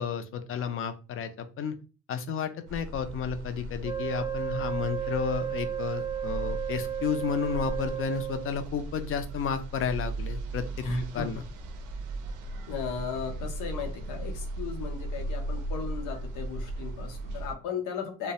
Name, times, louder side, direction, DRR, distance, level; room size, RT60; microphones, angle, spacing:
voice 1, 0.0-1.8 2.1-10.9 11.1-11.4, left 7 dB, 45° left, 9 dB, 0.4 m, -32 dB
sound 1, 2.7-17.5, right 1 dB, 85° right, 0.5 m, -37 dB
Wind instrument woodwind instrument, 3.8-8.6, right 10 dB, 15° right, 0.6 m, -33 dB
voice 2, 10.8-11.3 12.7-18.3, left 5 dB, 90° left, 3 dB, 0.7 m, -36 dB
2.2 x 2.0 x 2.7 m, 0.34 s
cardioid pair, 90°, 30 cm